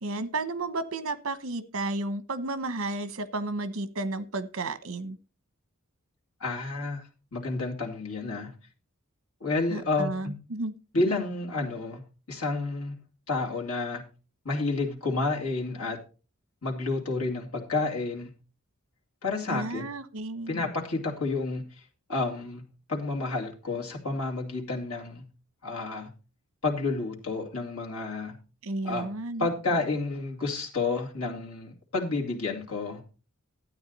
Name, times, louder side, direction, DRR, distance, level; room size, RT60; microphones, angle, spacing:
voice 1, 0.0-5.2 9.7-10.7 19.5-20.5 28.6-29.5, right 2 dB, 65° right, 1.0 m, -32 dB
voice 2, 6.4-7.0 7.3-8.5 9.4-10.3 10.9-12.0 12.3-12.9 13.3-14.0 14.4-16.0 16.6-18.3 19.2-19.8 20.5-21.6 22.1-22.6 22.9-25.2 25.6-26.1 26.6-28.3 28.8-29.1 29.4-33.0, left 3 dB, 85° left, 2.8 m, -30 dB
12.5 x 9.2 x 4.1 m
head